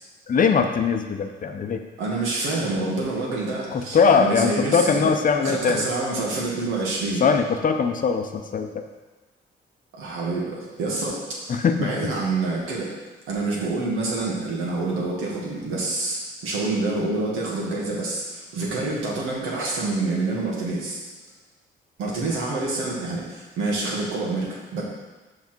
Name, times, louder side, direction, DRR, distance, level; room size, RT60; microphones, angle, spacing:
voice 1, 0.3-1.8 3.7-5.8 7.2-8.7 11.5-11.8, left 5 dB, 45° left, 6 dB, 0.7 m, -21 dB
voice 2, 2.0-5.1 5.4-7.2 9.9-12.9 13.3-21.0 22.0-24.8, right 3 dB, 90° right, -4 dB, 2.0 m, -27 dB
5.8 x 5.8 x 4.5 m, 1.2 s
cardioid pair, 90°, 20 cm